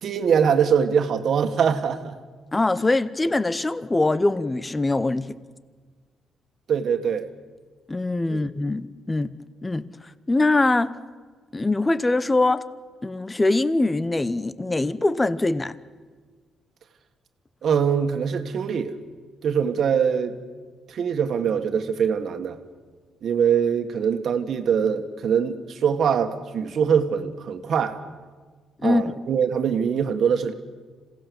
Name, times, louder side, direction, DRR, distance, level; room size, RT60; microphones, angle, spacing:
voice 1, 0.0-2.2 6.7-7.3 8.3-8.5 17.6-19.0 19.4-20.4 20.9-22.6 23.2-28.0 28.8-30.5, right 7 dB, 60° right, 7 dB, 1.9 m, -23 dB
voice 2, 2.5-5.4 7.9-9.3 9.6-9.8 10.3-10.9 11.5-12.7 13.0-15.7 28.8-29.0, left 2 dB, 20° left, 16 dB, 0.9 m, -22 dB
27.0 x 17.0 x 7.2 m, 1.5 s
cardioid pair, 90°, 0 cm